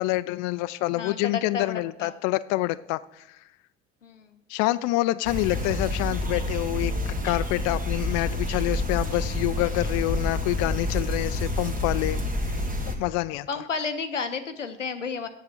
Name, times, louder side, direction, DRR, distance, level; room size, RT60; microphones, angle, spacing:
voice 1, 0.0-3.4 4.5-12.5 13.0-13.5, left 18 dB, 50° left, 14 dB, 0.4 m, -27 dB
voice 2, 0.9-2.1 4.0-4.4 13.5-15.3, left 5 dB, 85° left, 9 dB, 0.7 m, -32 dB
sound 1, 5.2-12.9, left 1 dB, 25° right, 1.7 m, -28 dB
8.1 x 7.4 x 6.4 m, 0.85 s
figure-of-eight pair, 55°, 36 cm